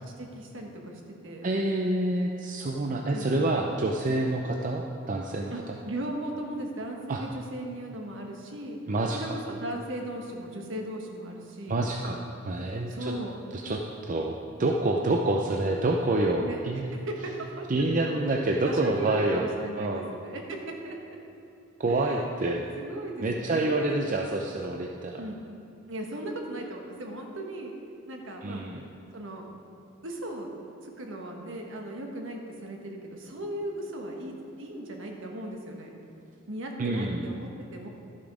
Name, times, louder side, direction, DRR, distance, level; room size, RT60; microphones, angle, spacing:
voice 1, 0.2-1.5 3.1-3.3 5.5-8.8 9.1-11.8 12.9-13.3 16.4-16.6 16.9-21.2 21.9-24.0 25.2-25.4 25.9-27.7 28.1-28.6 29.1-29.5 30.0-30.5 30.8-35.9 36.5-37.9, right 1 dB, 65° right, 1 dB, 1.4 m, -37 dB
voice 2, 1.4-5.5 7.1-7.2 8.9-9.4 11.7-12.2 12.4-13.1 13.5-16.9 17.7-19.5 19.8-20.1 21.8-22.6 23.2-25.2 28.4-28.8 36.8-37.2, right 2 dB, 40° right, 1 dB, 0.5 m, -27 dB
12.5 x 7.0 x 4.9 m, 2.7 s
head